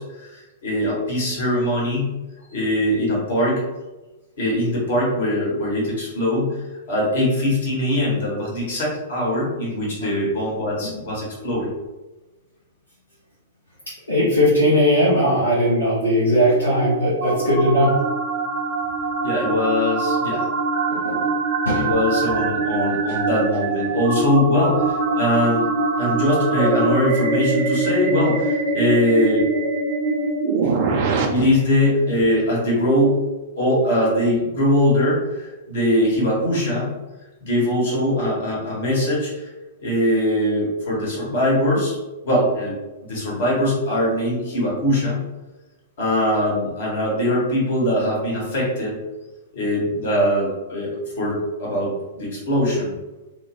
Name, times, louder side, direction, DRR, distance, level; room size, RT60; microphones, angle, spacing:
voice 1, 0.0-2.1 2.5-3.6 4.4-6.6 6.9-11.7 19.2-20.5 21.8-25.7 26.0-29.5 31.3-33.2 33.6-36.9 37.4-39.5 39.8-42.0 42.2-42.7 43.0-45.2 46.0-49.0 49.5-52.9, left 1 dB, 55° left, -4 dB, 1.2 m, -21 dB
voice 2, 14.1-18.0 20.9-21.3 21.6-21.9 31.3-31.4, equal, 80° left, -8 dB, 0.8 m, -19 dB
sound 1, 16.2-31.2, right 3 dB, 40° right, 0.4 m, -23 dB
2.4 x 2.1 x 3.0 m, 1.1 s
figure-of-eight pair, 105°, 0 cm